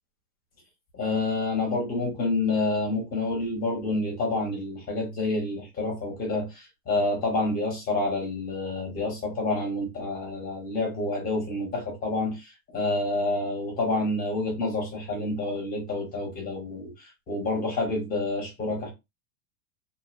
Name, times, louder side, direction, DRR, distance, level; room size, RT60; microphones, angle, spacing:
voice 1, 0.9-18.9, left 2 dB, 20° left, 1.0 m, -28 dB
2.6 x 2.2 x 2.5 m
supercardioid pair, 165°, 48 cm